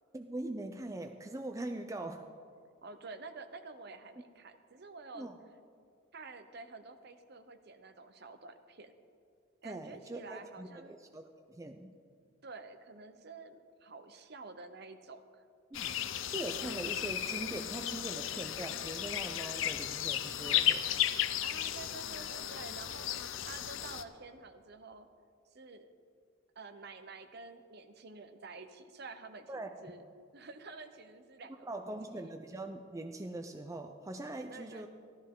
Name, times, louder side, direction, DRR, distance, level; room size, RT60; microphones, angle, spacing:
voice 1, 0.1-2.3 5.1-5.4 9.6-12.0 15.7-20.8 29.5-29.7 31.6-34.9, right 2 dB, 15° right, 5 dB, 0.4 m, -42 dB
voice 2, 2.8-5.3 6.1-8.9 9.6-10.9 12.4-15.4 21.4-25.1 25.5-25.9 26.6-30.0 30.3-32.3 34.5-34.9, right 3 dB, 50° right, 9 dB, 0.7 m, -49 dB
sound 1, 15.7-24.0, left 11 dB, 70° left, 0.5 m, -34 dB
14.5 x 13.0 x 3.7 m, 2.3 s
head